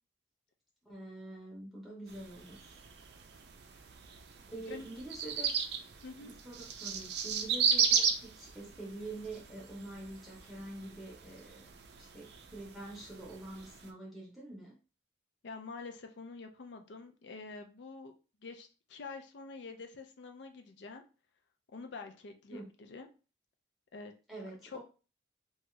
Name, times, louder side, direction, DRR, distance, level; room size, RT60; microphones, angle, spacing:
voice 1, 0.8-2.6 4.5-5.5 6.2-11.7 12.0-14.7 22.5-22.7 24.3-24.8, right 2 dB, ahead, -4 dB, 0.7 m, -46 dB
sound 1, 2.1-13.9, right 7 dB, 60° right, 0.4 m, -36 dB
voice 2, 4.5-4.9 6.0-6.3 15.4-18.1 18.4-21.0 21.7-23.1 23.9-24.1 24.4-24.8, left 4 dB, 75° left, 5 dB, 0.4 m, -47 dB
2.7 x 2.3 x 3.0 m, 0.34 s
head